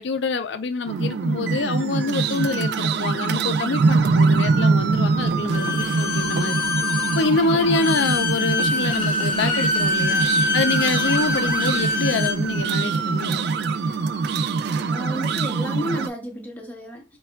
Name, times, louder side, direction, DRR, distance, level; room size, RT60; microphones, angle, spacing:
voice 1, 0.0-6.6 7.1-10.3 10.5-13.4, left 3 dB, 65° left, 0.5 m, -26 dB
sound 1, 0.9-16.1, right 4 dB, 60° right, 0.3 m, -23 dB
Bowed string instrument, 5.5-12.4, left 2 dB, 25° left, 1.5 m, -25 dB
voice 2, 14.8-17.0, left 1 dB, 10° left, 0.8 m, -32 dB
5.6 x 2.3 x 2.2 m
head